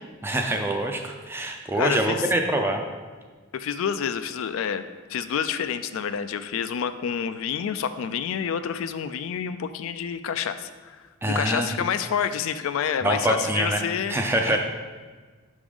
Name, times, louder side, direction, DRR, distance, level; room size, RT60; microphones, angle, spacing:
voice 1, 0.2-2.8 11.2-11.7 13.0-13.8 14.1-14.6, right 1 dB, 10° right, 3 dB, 0.4 m, -25 dB
voice 2, 1.7-2.3 3.5-4.8 5.1-11.0 11.3-14.6, left 7 dB, 70° left, 11 dB, 0.3 m, -28 dB
6.0 x 3.6 x 4.9 m, 1.5 s
head